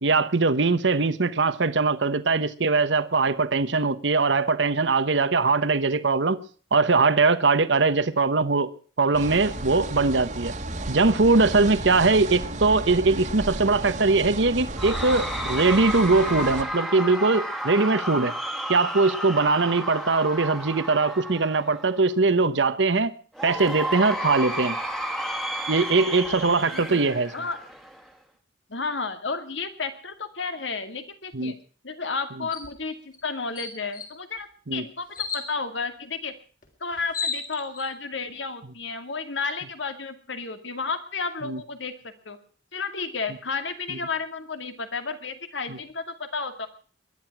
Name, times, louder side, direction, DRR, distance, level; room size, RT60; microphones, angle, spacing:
voice 1, 0.0-6.4 6.7-8.7 9.0-10.5 10.9-18.3 18.7-23.1 23.4-24.8 25.7-27.3 31.3-31.5 34.7-34.8 41.4-41.6, right 3 dB, 70° right, 1.0 m, -21 dB
sound 1, 9.1-16.6, right 2 dB, 40° right, 1.7 m, -33 dB
Cheering / Crowd, 14.8-22.1 23.3-28.1, equal, ahead, 1.7 m, -32 dB
voice 2, 26.7-27.0 27.3-27.6 28.7-31.6 31.8-36.3 36.8-42.4 42.7-46.7, left 4 dB, 75° left, 2.2 m, -32 dB
sound 2, 32.5-32.7 33.1-33.2 33.6-34.1 35.1-35.5 36.6-36.7 36.9-37.9, left 5 dB, 45° left, 3.6 m, -32 dB
21.5 x 11.0 x 5.9 m
head